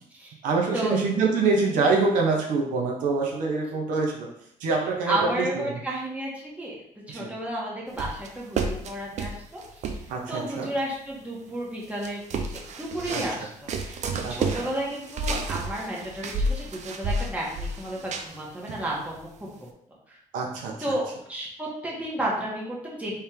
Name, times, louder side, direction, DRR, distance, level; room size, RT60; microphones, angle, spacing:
voice 1, 0.4-4.3 4.6-5.2 7.1-7.3 10.1-10.7 13.1-13.2 14.2-14.7 20.3-20.7, right 4 dB, 90° right, 0 dB, 1.0 m, -25 dB
voice 2, 1.6-1.9 5.0-6.7 7.1-9.8 10.3-12.4 12.8-19.5 20.1-20.2 20.8-23.2, right 1 dB, 10° right, -4 dB, 1.6 m, -32 dB
sound 1, 8.0-10.1 10.8-10.9 11.8-13.4 13.7-18.4 18.7-19.2, right 2 dB, 60° right, 0.6 m, -31 dB
3.5 x 3.4 x 4.5 m, 0.71 s
cardioid pair, 100°, 13 cm